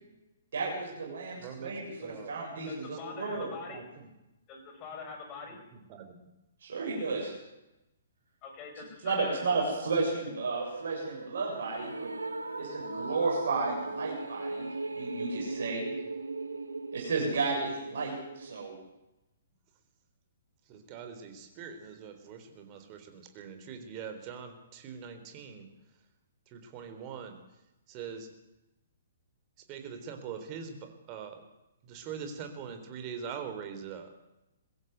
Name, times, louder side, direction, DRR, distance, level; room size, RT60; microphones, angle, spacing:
voice 1, 0.5-3.5 6.6-7.3 9.0-12.1 12.6-14.7 14.9-15.8 16.9-18.7, right 3 dB, 55° right, -2 dB, 7.5 m, -33 dB
voice 2, 1.4-3.0 3.4-4.1 5.7-6.3 20.7-25.7 26.5-27.4 27.9-28.3 29.7-31.4 31.8-34.1, right 6 dB, 30° right, 6 dB, 3.8 m, -43 dB
voice 3, 2.6-3.8 4.5-5.6 8.4-9.6, left 4 dB, 25° left, 4 dB, 5.8 m, -44 dB
sound 1, 10.5-18.7, right 3 dB, 75° right, 2.0 m, -38 dB
22.0 x 15.0 x 8.2 m, 0.94 s
figure-of-eight pair, 120°, 0 cm